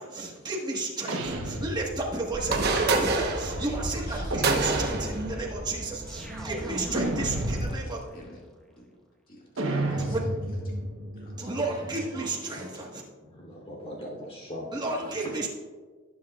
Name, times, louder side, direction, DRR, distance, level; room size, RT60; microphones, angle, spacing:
voice 1, 0.0-8.0 10.0-10.2 11.4-13.0 14.7-15.5, right 2 dB, 20° right, -2 dB, 1.6 m, -32 dB
sound 1, 1.1-2.4 4.3-5.4 6.9-8.0 9.6-12.3, right 1 dB, 80° right, 1.2 m, -32 dB
sound 2, 2.3-7.7, right 3 dB, 50° right, 1.2 m, -29 dB
sound 3, 6.1-8.3, equal, 5° left, 1.2 m, -42 dB
voice 2, 8.1-8.4 8.7-8.8 9.3-10.6 11.1-11.6 11.9-12.0, left 1 dB, 45° left, -4 dB, 2.2 m, -51 dB
voice 3, 13.2-15.3, equal, 30° left, -2 dB, 3.3 m, -40 dB
18.5 x 7.3 x 2.5 m, 1.4 s
head